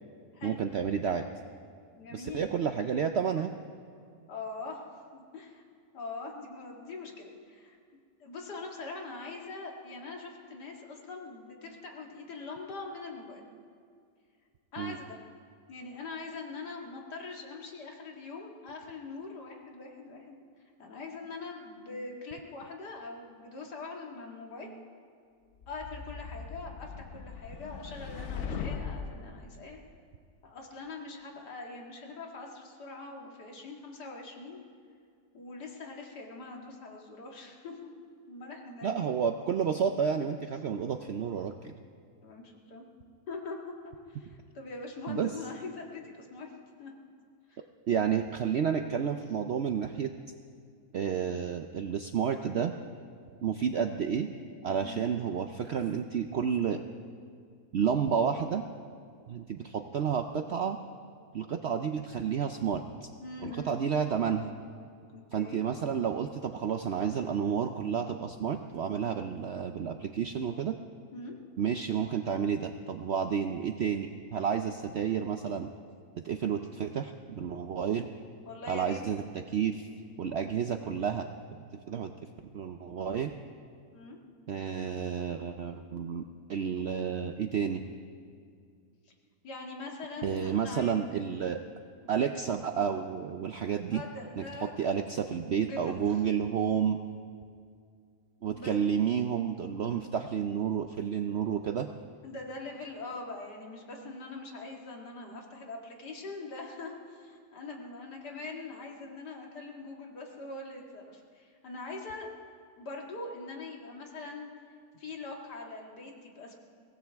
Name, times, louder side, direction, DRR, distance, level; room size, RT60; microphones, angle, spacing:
voice 1, 0.4-1.2 2.1-3.5 14.8-15.0 38.8-41.7 45.1-45.3 47.9-50.1 50.9-52.7 53.4-54.3 54.6-56.8 57.7-58.6 59.3-60.8 61.3-63.1 63.4-64.5 65.3-70.8 71.6-75.7 76.2-78.1 78.7-79.9 80.2-81.3 81.9-82.1 82.5-83.3 84.5-86.2 86.5-87.8 90.2-91.6 92.1-94.0 94.4-97.0 98.4-101.9, right 7 dB, 70° right, 6 dB, 0.6 m, -30 dB
voice 2, 2.0-2.4 4.3-5.6 5.9-7.8 8.2-13.4 14.7-15.2 15.7-20.4 20.8-24.7 25.7-29.8 30.4-34.6 35.3-37.9 38.3-39.1 42.2-42.9 43.3-43.6 43.8-46.5 46.8-46.9 47.5-47.7 54.8-55.0 63.2-63.7 65.1-65.6 71.1-71.3 77.6-77.7 78.5-79.0 83.9-84.2 89.4-90.9 92.0-92.1 93.9-94.9 95.5-96.2 98.5-98.8 102.2-112.3 112.8-114.5 115.0-116.6, left 3 dB, 80° left, 0 dB, 2.5 m, -43 dB
sound 1, 25.6-29.3, left 6 dB, 55° left, 1.0 m, -39 dB
23.0 x 17.0 x 3.5 m, 2.2 s
omnidirectional pair, 1.7 m